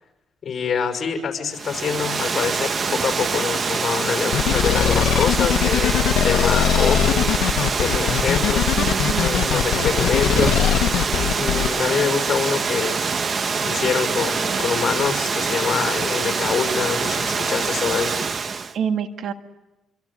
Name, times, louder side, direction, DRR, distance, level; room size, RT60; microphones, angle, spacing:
voice 1, 0.4-10.6 11.3-13.0 13.6-18.2, left 6 dB, 45° left, 5 dB, 5.9 m, -25 dB
Water, 1.5-18.7, right 5 dB, 40° right, 1.4 m, -24 dB
sound 1, 4.3-11.7, left 10 dB, 80° left, 1.3 m, -21 dB
voice 2, 8.8-9.4 10.3-10.5 14.5-14.7 18.7-19.3, right 7 dB, 70° right, 7 dB, 1.8 m, -26 dB
26.0 x 25.5 x 8.8 m, 1.0 s
cardioid pair, 90°, 0 cm